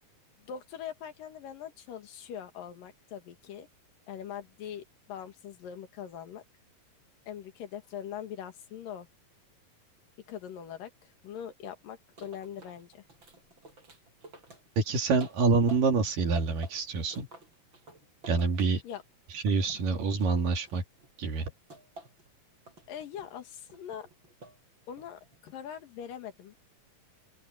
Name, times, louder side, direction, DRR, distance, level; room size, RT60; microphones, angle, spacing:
voice 1, 0.4-3.7 4.1-6.4 7.3-9.1 10.3-13.0 18.8-19.0 19.7-19.8 22.9-24.1 24.9-26.6, left 9 dB, 80° left, 3.5 m, -42 dB
sound 1, 12.2-16.1 16.4-19.1 19.5-21.1 21.7-22.3 22.7-23.3 23.7-24.6 25.0-25.4, right 2 dB, 35° right, 7.3 m, -51 dB
voice 2, 14.8-17.3 18.3-18.8 19.3-20.8 21.2-21.5, right 4 dB, 75° right, 4.5 m, -26 dB
open air
omnidirectional pair, 3.9 m